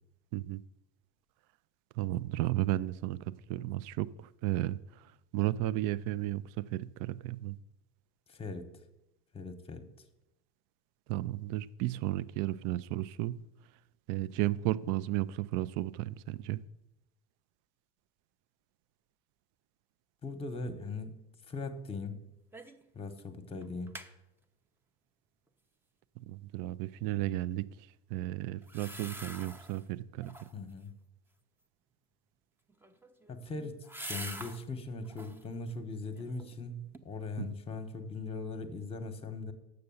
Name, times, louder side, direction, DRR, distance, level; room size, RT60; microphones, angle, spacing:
voice 1, 2.0-4.8 5.3-7.6 11.1-13.4 14.1-16.6 26.2-27.7 28.1-30.5 37.4-37.5, right 15 dB, 60° right, 18 dB, 0.5 m, -33 dB
voice 2, 8.3-8.7 9.3-9.9 20.2-21.1 21.5-22.2 22.9-24.0 30.5-30.9 33.3-33.8 34.1-39.5, left 3 dB, 15° left, 9 dB, 1.0 m, -40 dB
sound 1, 22.5-22.9 23.2-23.3 23.6-24.1 28.6-29.8 30.2-30.7 32.7-34.6 35.0-35.5 36.0-36.6 36.9-37.0, right 1 dB, 5° right, 0.6 m, -45 dB
6.7 x 6.7 x 7.0 m, 0.92 s
supercardioid pair, 100°, 36 cm